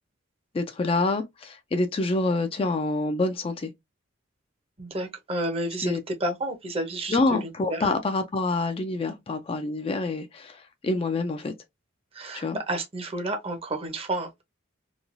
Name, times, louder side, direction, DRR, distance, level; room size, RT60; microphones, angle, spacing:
voice 1, 0.5-3.7 5.8-6.0 7.1-11.5 12.3-12.6, left 2 dB, 30° left, 0.3 m, -27 dB
voice 2, 4.8-7.9 12.1-14.4, right 1 dB, 30° right, 0.7 m, -31 dB
3.0 x 2.3 x 2.5 m
head